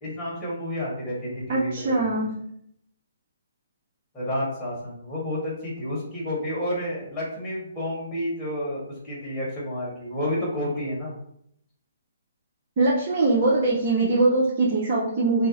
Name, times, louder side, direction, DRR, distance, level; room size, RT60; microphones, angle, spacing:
voice 1, 0.0-2.1 4.1-11.1, left 1 dB, 10° left, -6 dB, 1.2 m, -30 dB
voice 2, 1.5-2.3 12.8-15.5, right 2 dB, 45° right, -4 dB, 0.6 m, -22 dB
2.6 x 2.0 x 3.7 m, 0.71 s
hypercardioid pair, 145°, 0 cm